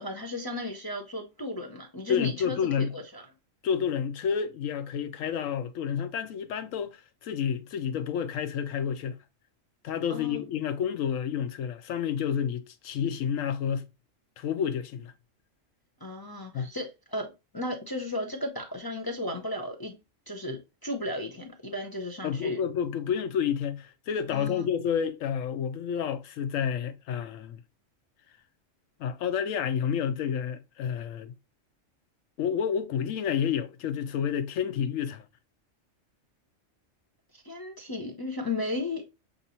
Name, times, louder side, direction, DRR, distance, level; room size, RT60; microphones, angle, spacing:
voice 1, 0.0-3.2 10.1-10.4 16.0-20.0 20.3-22.6 24.3-24.6 37.4-39.1, left 2 dB, 25° left, 0.5 m, -35 dB
voice 2, 2.1-2.9 3.6-9.2 9.8-13.9 14.4-15.1 16.5-16.7 22.2-27.6 29.0-31.3 32.4-35.3, left 8 dB, 85° left, 1.0 m, -30 dB
6.7 x 2.7 x 2.8 m
omnidirectional pair, 1.3 m